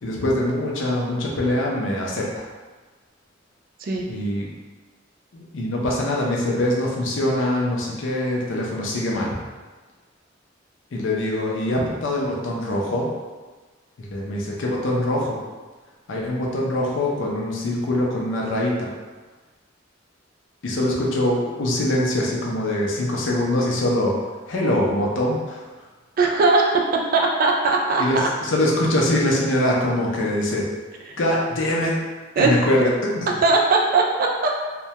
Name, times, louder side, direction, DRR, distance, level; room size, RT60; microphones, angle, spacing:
voice 1, 0.0-2.5 4.1-4.5 5.3-9.3 10.9-13.1 14.0-15.4 16.1-18.9 20.6-24.2 24.5-25.6 28.0-30.7 31.2-32.0 32.4-33.3, left 1 dB, 75° left, -2 dB, 0.5 m, -23 dB
voice 2, 26.2-26.8 27.1-28.0 31.1-31.2 32.4-32.5 33.4-34.6, right 3 dB, 45° right, 0 dB, 0.3 m, -19 dB
2.2 x 2.1 x 2.7 m, 1.3 s
head